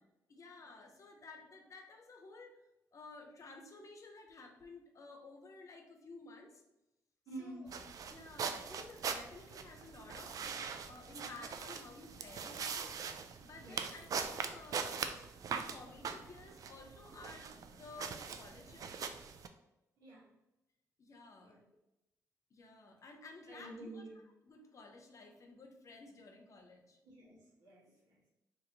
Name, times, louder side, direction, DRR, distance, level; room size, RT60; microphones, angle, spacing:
voice 1, 0.3-2.6 2.9-6.6 7.4-7.6 8.1-10.4 10.8-12.9 13.4-15.2 15.5-19.0 21.0-21.6 22.5-24.0 24.4-27.0, left 3 dB, 50° left, 3 dB, 0.8 m, -54 dB
voice 2, 7.3-7.7 13.6-13.8 20.0-20.3 21.4-21.6 23.5-24.2 27.0-28.3, right 2 dB, 85° right, -5 dB, 1.3 m, -50 dB
sound 1, 7.7-19.5, right 6 dB, 60° right, 0.4 m, -42 dB
2.9 x 2.7 x 3.9 m, 0.91 s
supercardioid pair, 60°, 7 cm